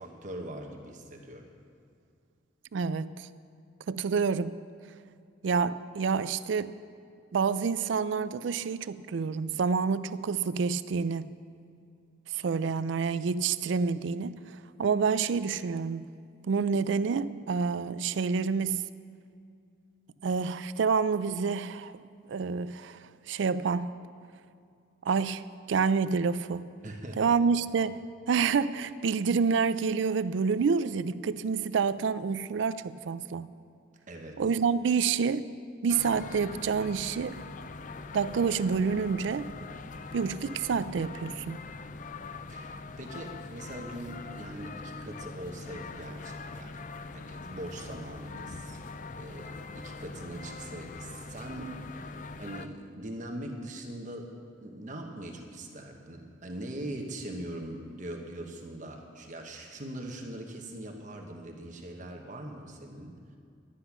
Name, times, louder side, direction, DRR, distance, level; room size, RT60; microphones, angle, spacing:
voice 1, 0.0-1.5 26.8-27.4 34.1-34.4 42.5-46.8 47.1-48.8 49.2-54.3 54.6-63.2, right 1 dB, 40° right, 2 dB, 1.0 m, -41 dB
voice 2, 2.7-3.3 3.9-4.6 5.4-6.8 7.3-11.4 12.3-14.3 14.8-16.1 16.4-18.8 20.2-22.0 22.3-23.9 25.0-25.4 25.7-26.7 27.2-28.0 28.3-33.5 34.4-35.5 35.8-37.4 38.1-39.5 40.1-41.7, right 5 dB, 75° right, 15 dB, 0.4 m, -28 dB
sound 1, 35.9-52.7, left 3 dB, 40° left, 0.4 m, -42 dB
11.5 x 10.0 x 5.9 m, 2.4 s
head